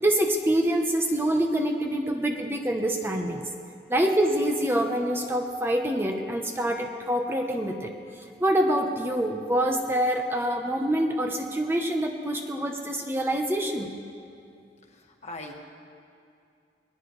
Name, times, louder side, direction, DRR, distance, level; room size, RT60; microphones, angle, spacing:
voice 1, 0.0-3.5 3.9-7.9 8.4-13.9, right 1 dB, 15° right, 3 dB, 0.8 m, -26 dB
voice 2, 14.8-15.5, left 2 dB, 40° left, 2 dB, 1.6 m, -41 dB
21.5 x 20.0 x 3.2 m, 2.4 s
head